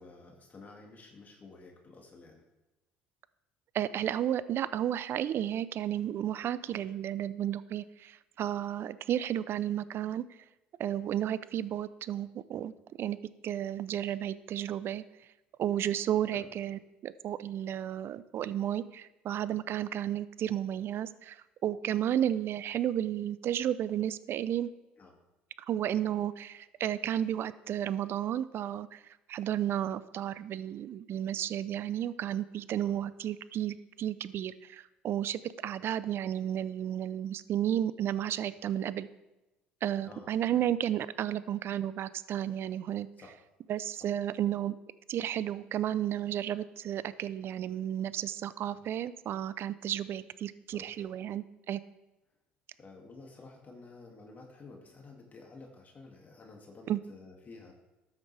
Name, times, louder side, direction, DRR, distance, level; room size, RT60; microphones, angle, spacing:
voice 1, 0.0-2.4 6.3-7.0 16.3-16.5 25.0-25.2 32.8-33.0 40.0-40.7 43.2-43.3 43.9-44.1 50.7-51.1 52.8-57.7, left 3 dB, 35° left, 1 dB, 2.3 m, -52 dB
voice 2, 3.7-10.2 10.8-12.7 13.0-13.2 13.4-15.0 15.6-24.7 25.7-29.0 29.3-39.1 39.8-43.1 43.7-44.8 45.1-51.8 56.9-57.0, right 11 dB, 55° right, 16 dB, 0.6 m, -32 dB
13.0 x 9.0 x 3.4 m, 0.99 s
hypercardioid pair, 65°, 5 cm